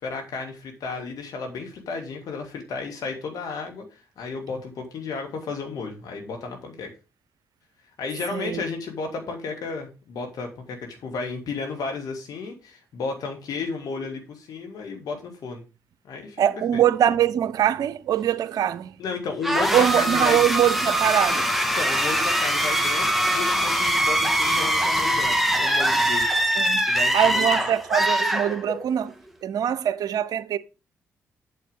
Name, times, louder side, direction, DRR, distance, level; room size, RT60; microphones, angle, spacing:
voice 1, 0.0-6.9 8.0-15.6 16.0-16.4 16.7-16.8 19.0-20.4 21.8-26.3 26.8-27.7, left 4 dB, 65° left, 2.6 m, -33 dB
voice 2, 8.3-8.6 16.4-19.0 19.7-21.6 26.6-29.1 29.4-30.6, right 10 dB, 65° right, 0.6 m, -23 dB
sound 1, 19.4-29.0, right 1 dB, ahead, 1.8 m, -23 dB
8.3 x 7.6 x 3.7 m
hypercardioid pair, 40°, 7 cm